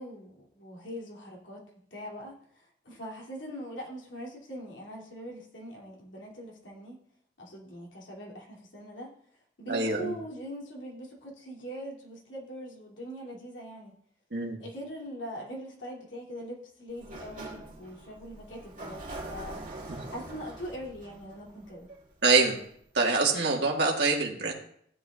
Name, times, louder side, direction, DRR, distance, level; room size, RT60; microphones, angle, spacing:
voice 1, 0.0-1.6 1.9-7.0 7.4-9.1 9.6-13.9 14.6-19.6 19.9-21.9, equal, 85° left, -3 dB, 2.8 m, -42 dB
voice 2, 9.7-10.2 14.3-14.6 19.9-20.0 22.2-22.6 22.9-24.5, right 3 dB, 65° right, 0 dB, 1.7 m, -25 dB
Sliding door, 16.9-22.6, right 2 dB, 45° right, 2.4 m, -44 dB
15.0 x 8.0 x 2.4 m, 0.64 s
head